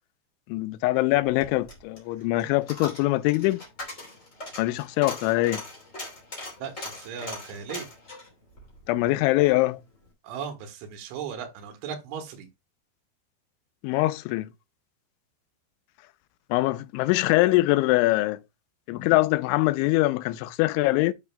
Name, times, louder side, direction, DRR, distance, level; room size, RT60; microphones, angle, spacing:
voice 1, 0.5-3.6 4.6-5.6 8.9-9.8 13.8-14.5 16.5-18.4 18.9-21.1, left 19 dB, 85° left, 3.0 m, -23 dB
Coin (dropping), 1.2-9.6 9.9-10.0, left 2 dB, 20° left, 2.4 m, -41 dB
voice 2, 6.6-7.9 10.2-12.5, right 7 dB, 85° right, 3.8 m, -37 dB
12.0 x 5.8 x 2.2 m
omnidirectional pair, 5.3 m